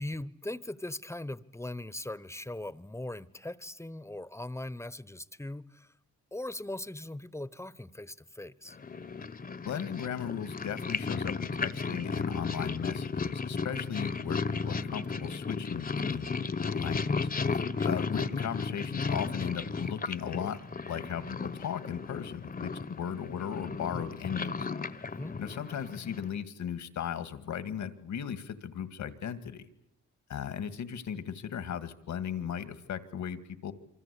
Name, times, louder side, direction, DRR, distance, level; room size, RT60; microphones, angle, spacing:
voice 1, 0.0-5.9 6.3-8.8 17.8-18.0 25.0-25.4, left 1 dB, 10° left, 18 dB, 1.0 m, -40 dB
Purr, 8.7-26.4, left 4 dB, 30° left, 1.0 m, -34 dB
voice 2, 9.7-16.4 16.6-20.6 20.9-24.5 25.4-29.6 30.3-33.7, left 8 dB, 75° left, 12 dB, 2.0 m, -37 dB
27.0 x 25.0 x 8.4 m, 0.77 s
cardioid pair, 90°, 30 cm